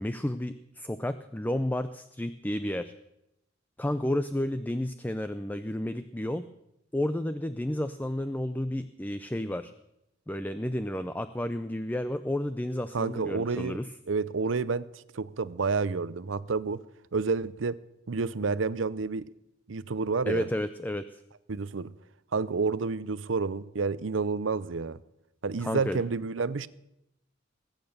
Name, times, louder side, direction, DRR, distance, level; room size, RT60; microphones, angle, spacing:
voice 1, 0.0-2.9 3.8-6.4 6.9-9.7 10.3-13.9 20.3-21.2 25.6-26.0, left 1 dB, 10° left, 0.5 m, -31 dB
voice 2, 12.9-16.8 17.1-17.8 18.1-19.2 19.7-20.5 21.5-21.9 22.3-25.0 25.4-26.7, right 4 dB, 85° right, 0.6 m, -29 dB
20.5 x 9.1 x 6.6 m
head